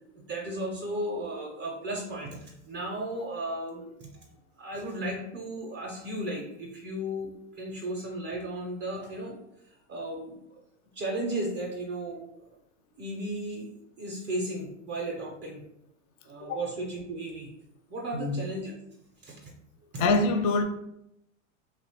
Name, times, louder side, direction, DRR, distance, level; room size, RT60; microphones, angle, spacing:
voice 1, 0.1-4.3 4.6-9.3 9.9-10.4 10.9-12.4 13.0-15.6 16.2-17.5 17.9-18.7 19.2-19.5 19.9-20.1, right 1 dB, 30° right, -1 dB, 0.5 m, -35 dB
voice 2, 20.0-20.6, left 3 dB, 35° left, 6 dB, 0.4 m, -24 dB
2.6 x 2.1 x 2.8 m, 0.78 s
hypercardioid pair, 110°, 39 cm